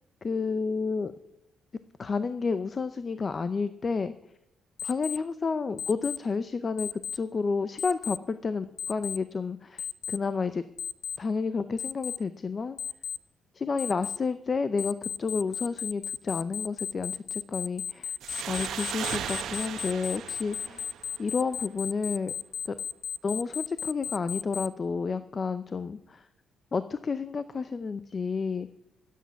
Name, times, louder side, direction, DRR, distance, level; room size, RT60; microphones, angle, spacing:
voice 1, 0.2-1.1 2.0-4.1 4.8-10.6 11.2-12.8 13.5-18.2 18.5-20.9 21.2-22.3 22.7-22.8 23.2-26.3 26.7-28.7, left 4 dB, 25° left, 12 dB, 0.6 m, -30 dB
Alarm, 4.8-5.2 5.8-6.2 6.8-7.2 7.8-8.2 8.8-9.2 9.8-10.2 10.8-11.2 11.8-12.2 12.8-13.2 13.8-14.2 14.8-24.7, left 9 dB, 75° left, 0.5 m, -34 dB
sound 1, 18.2-21.6, right 9 dB, 65° right, 1.2 m, -37 dB
13.5 x 8.4 x 9.5 m, 0.86 s
cardioid pair, 165°, 0 cm